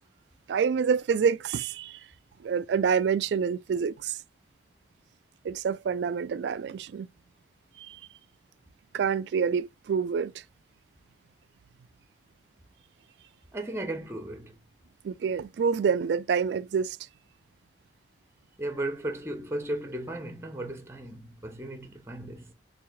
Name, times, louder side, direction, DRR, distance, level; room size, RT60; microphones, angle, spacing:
voice 1, 0.5-2.0 2.4-4.2 5.4-7.1 7.8-8.0 8.9-10.3 15.0-17.0, right 6 dB, 75° right, 0.3 m, -27 dB
voice 2, 13.5-14.6 18.6-22.5, right 1 dB, 15° right, 0.7 m, -35 dB
4.7 x 3.3 x 2.3 m
head